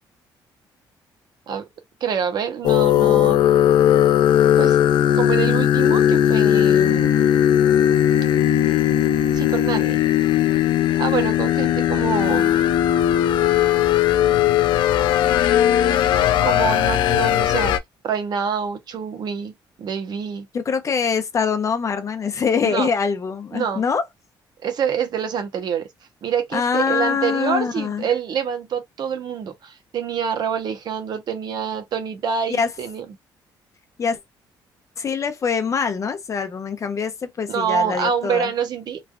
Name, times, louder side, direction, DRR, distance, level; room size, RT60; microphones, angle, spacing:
voice 1, 2.0-3.4 4.6-4.8 5.1-7.1 9.3-10.0 11.0-12.6 16.4-17.7 18.0-19.5 19.8-20.5 22.6-22.9 23.5-23.8 24.6-25.9 26.2-33.1 37.5-39.0, right 7 dB, 60° right, 0.8 m, -26 dB
sound 1, 2.6-17.8, left 11 dB, 75° left, 0.4 m, -18 dB
voice 2, 20.5-24.0 26.5-28.0 32.5-32.7 34.0-34.2 35.0-38.5, left 6 dB, 40° left, 0.7 m, -24 dB
3.1 x 2.3 x 2.3 m
cardioid pair, 105°, 8 cm